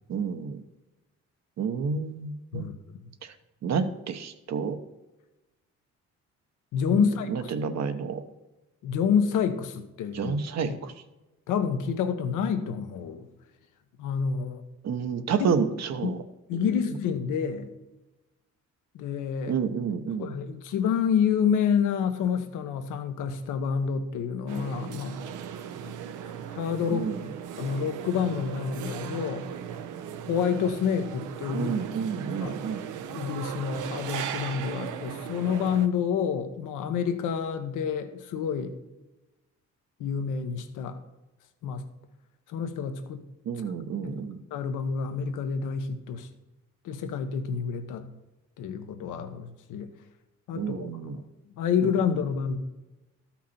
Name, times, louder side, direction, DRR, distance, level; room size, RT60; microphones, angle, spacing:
voice 1, 0.1-0.6 1.6-2.7 3.2-3.3 3.6-4.8 7.0-8.2 10.1-10.9 14.8-16.2 16.5-16.7 19.5-20.3 26.9-27.3 31.5-32.8 43.4-44.4 50.6-51.2 51.8-51.9, right 6 dB, 60° right, 9 dB, 1.0 m, -30 dB
voice 2, 6.7-7.5 8.8-10.8 11.5-13.3 14.0-14.6 15.4-15.5 16.0-16.2 16.5-17.7 18.9-19.6 20.2-25.2 25.8-25.9 26.2-27.1 27.6-29.5 30.3-31.7 32.4-32.8 33.1-38.8 40.0-41.0 41.6-41.8 42.5-43.2 43.5-43.6 44.0-44.1 44.5-46.3 46.8-48.1 48.6-49.9 50.5-51.2 51.6-52.6, left 7 dB, 90° left, 8 dB, 1.1 m, -28 dB
sound 1, 24.5-35.9, right 9 dB, 85° right, 0.7 m, -37 dB
13.0 x 5.9 x 4.3 m, 1.0 s
cardioid pair, 90°, 30 cm